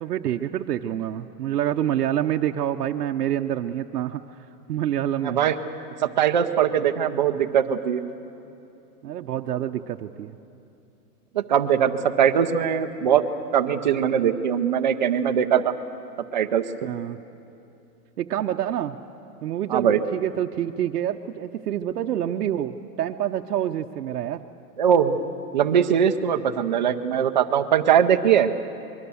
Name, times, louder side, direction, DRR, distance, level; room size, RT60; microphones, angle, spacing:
voice 1, 0.0-4.2 4.7-5.4 9.0-10.3 16.8-17.2 18.2-19.0 19.4-24.5, right 11 dB, 75° right, 4 dB, 0.9 m, -27 dB
voice 2, 5.2-5.6 6.0-8.0 11.3-13.2 13.5-15.7 16.3-16.6 19.7-20.0 24.8-25.2 25.5-28.5, right 8 dB, 30° right, 7 dB, 0.6 m, -21 dB
24.5 x 22.5 x 7.1 m, 2.7 s
hypercardioid pair, 180°, 47 cm